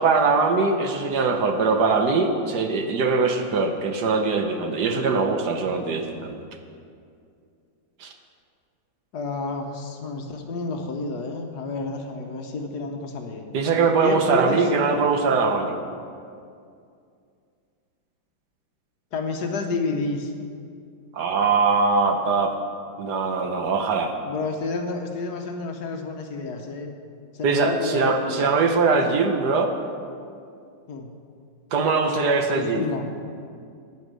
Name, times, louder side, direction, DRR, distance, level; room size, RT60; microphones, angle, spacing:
voice 1, 0.0-6.4 8.0-8.1 13.5-15.8 21.1-22.5 23.0-24.2 27.4-29.7 31.7-32.9, right 4 dB, 65° right, 5 dB, 1.3 m, -22 dB
voice 2, 9.1-13.4 14.0-14.7 19.1-20.3 24.2-26.9 27.3-28.6 30.9-31.1 32.6-33.1, left 3 dB, 60° left, 3 dB, 1.4 m, -30 dB
10.0 x 9.5 x 6.2 m, 2.3 s
omnidirectional pair, 2.1 m